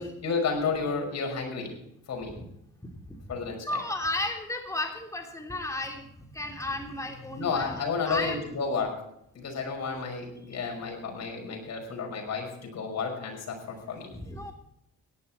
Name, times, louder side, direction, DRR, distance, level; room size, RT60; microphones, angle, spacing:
voice 1, 0.0-1.8 2.1-2.4 3.3-3.8 7.4-9.0 9.3-14.1, left 5 dB, 60° left, 2 dB, 5.7 m, -32 dB
voice 2, 2.8-3.2 3.6-6.1 6.3-8.5 14.1-14.5, left 2 dB, 10° left, 2 dB, 3.0 m, -34 dB
17.0 x 11.5 x 4.3 m, 0.78 s
cardioid pair, 90°, 30 cm